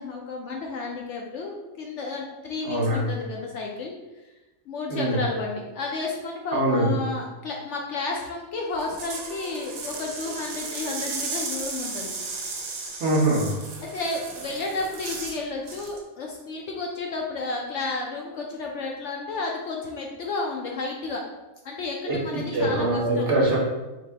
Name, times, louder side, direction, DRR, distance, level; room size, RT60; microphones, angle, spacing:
voice 1, 0.0-4.3 4.7-12.1 13.8-21.2 21.6-23.3, left 3 dB, 65° left, -1 dB, 0.8 m, -32 dB
voice 2, 2.6-3.1 4.9-5.2 6.5-6.9 13.0-13.5 22.1-23.6, right 1 dB, 55° right, -3 dB, 1.0 m, -23 dB
sound 1, 8.7-15.4 15.7-16.0, right 4 dB, 80° right, 1.1 m, -35 dB
4.0 x 2.7 x 3.3 m, 1.1 s
omnidirectional pair, 1.5 m